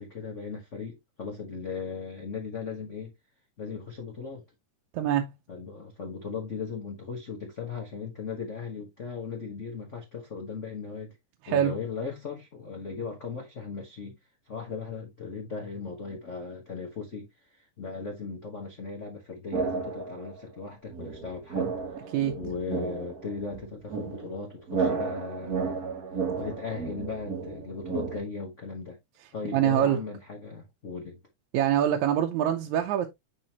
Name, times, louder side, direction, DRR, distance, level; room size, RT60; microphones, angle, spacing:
voice 1, 0.0-3.1 3.6-4.4 5.5-11.2 11.5-14.2 14.5-17.3 17.5-21.7 22.1-25.8 26.3-29.0 29.3-31.2, left 5 dB, 80° left, 0.6 m, -37 dB
voice 2, 4.9-5.3 11.4-11.7 22.1-22.4 29.5-30.0 31.5-33.1, right 10 dB, 75° right, 2.0 m, -24 dB
sound 1, 19.5-20.4 20.9-28.2, right 5 dB, 50° right, 1.0 m, -33 dB
10.0 x 3.7 x 2.9 m
omnidirectional pair, 3.6 m